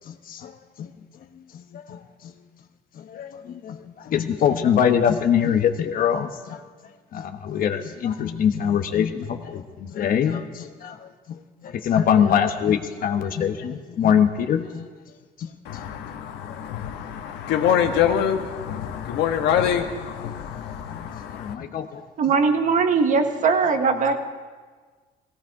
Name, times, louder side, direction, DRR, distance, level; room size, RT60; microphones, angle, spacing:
voice 1, 0.1-0.9 1.3-2.3 2.9-14.8 15.4-15.5 20.6-22.0, left 8 dB, 55° left, 7 dB, 1.1 m, -24 dB
voice 2, 15.6-21.5, left 9 dB, 85° left, 5 dB, 1.5 m, -25 dB
voice 3, 22.2-24.2, right 5 dB, 50° right, 6 dB, 1.5 m, -20 dB
17.0 x 16.5 x 4.8 m, 1.4 s
cardioid pair, 110°, 17 cm